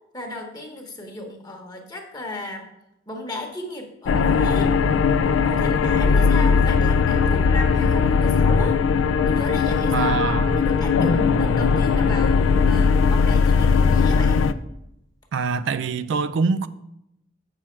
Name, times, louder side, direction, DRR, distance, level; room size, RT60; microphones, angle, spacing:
voice 1, 0.1-2.7 3.1-4.8 5.4-8.8 9.3-10.2 10.5-14.6, left 2 dB, 20° left, 1.0 m, -34 dB
sound 1, 4.1-14.5, left 5 dB, 75° left, 0.4 m, -19 dB
voice 2, 9.9-10.7 15.3-16.7, right 4 dB, 65° right, 0.3 m, -24 dB
7.4 x 6.2 x 4.4 m
head